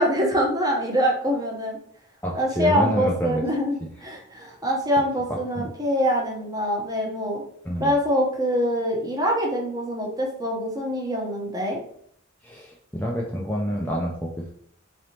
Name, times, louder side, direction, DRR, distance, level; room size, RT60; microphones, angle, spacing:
voice 1, 0.0-1.8 2.3-7.4 7.8-11.8, equal, 20° right, -1 dB, 0.9 m, -24 dB
voice 2, 2.2-3.4 5.5-5.7 7.6-7.9 12.4-14.5, equal, 10° left, -2 dB, 0.5 m, -27 dB
3.9 x 3.3 x 2.9 m, 0.64 s
head